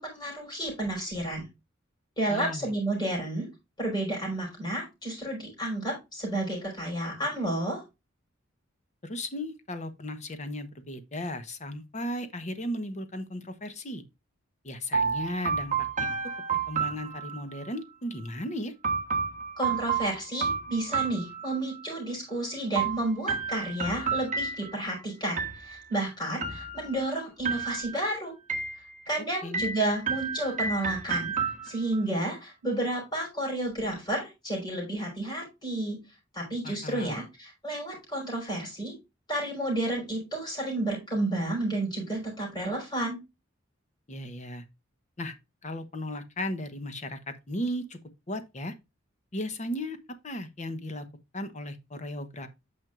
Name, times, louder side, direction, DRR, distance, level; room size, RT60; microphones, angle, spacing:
voice 1, 0.0-1.4 2.2-3.5 3.8-7.8 19.6-28.3 29.1-31.3 31.6-36.0 36.3-38.9 39.3-43.2, right 1 dB, 20° left, 5.2 m, -31 dB
voice 2, 2.3-2.7 9.0-14.0 14.6-15.7 16.0-16.2 16.5-18.7 29.4-29.6 36.6-37.2 44.1-44.6 45.2-45.3 45.6-48.0 48.3-48.7 49.3-50.0 50.2-51.1 51.3-52.5, left 1 dB, 35° left, 1.1 m, -36 dB
sound 1, 14.9-17.7 18.8-21.8 22.8-24.9 25.4-26.0 26.4-27.1 27.4-28.1 28.5-29.1 29.5-32.0, right 5 dB, 40° right, 1.2 m, -31 dB
9.1 x 6.3 x 2.5 m
head